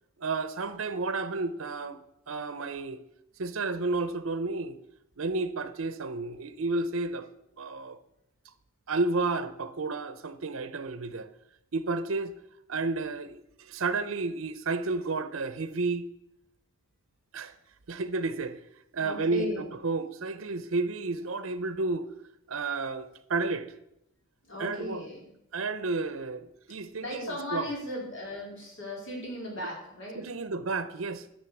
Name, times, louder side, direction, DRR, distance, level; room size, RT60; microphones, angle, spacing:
voice 1, 0.2-2.0 2.3-3.0 3.4-4.8 5.2-7.3 7.6-8.0 8.9-11.3 11.7-12.3 12.7-16.1 17.3-17.5 17.9-18.6 18.9-22.1 22.5-23.7 24.6-25.0 25.5-27.7 30.2-31.3, right 3 dB, 70° right, 0.7 m, -31 dB
voice 2, 19.0-19.7 24.4-25.3 27.0-30.3, left 1 dB, 65° left, 4.2 m, -37 dB
11.0 x 6.8 x 7.1 m
head